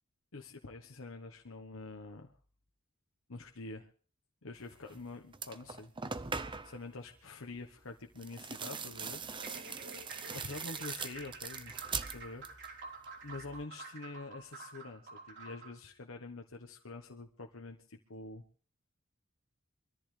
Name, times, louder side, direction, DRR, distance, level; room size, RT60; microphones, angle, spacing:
voice 1, 0.3-2.3 3.3-3.9 4.4-5.9 6.6-9.2 10.3-11.9 12.1-12.4 13.2-18.4, left 3 dB, 70° left, 2 dB, 1.2 m, -46 dB
sound 1, 4.9-5.0 5.3-6.8 8.2-12.7 13.0-13.6, right 5 dB, 25° right, 0.7 m, -41 dB
sound 2, 9.3-15.8, right 4 dB, 60° right, 3.8 m, -49 dB
24.0 x 14.0 x 3.3 m, 0.43 s
head